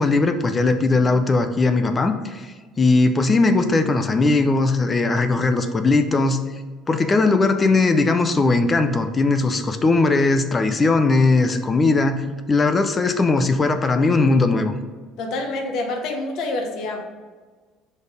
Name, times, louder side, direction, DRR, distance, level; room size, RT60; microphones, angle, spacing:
voice 1, 0.0-6.4 6.9-14.7, left 3 dB, 20° left, 8 dB, 0.5 m, -19 dB
voice 2, 15.2-17.0, left 2 dB, 60° left, 3 dB, 1.1 m, -27 dB
5.2 x 4.2 x 5.1 m, 1.4 s
cardioid pair, 135°, 0 cm